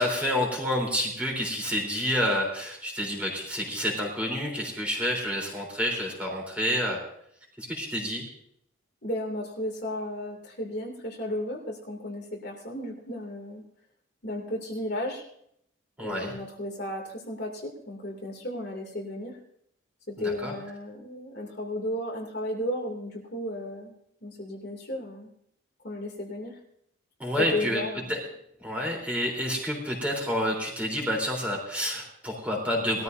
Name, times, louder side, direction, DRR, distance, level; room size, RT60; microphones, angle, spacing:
voice 1, 0.0-7.0 7.6-8.2 16.0-16.3 20.2-20.5 27.2-27.8 28.1-28.2 28.6-33.0, equal, 5° right, -2 dB, 3.7 m, -29 dB
voice 2, 9.0-13.6 14.2-15.2 16.0-19.4 20.1-23.9 24.2-25.3 25.8-26.6 27.4-28.1, left 1 dB, 50° left, 0 dB, 2.7 m, -34 dB
21.0 x 14.0 x 2.7 m, 0.70 s
head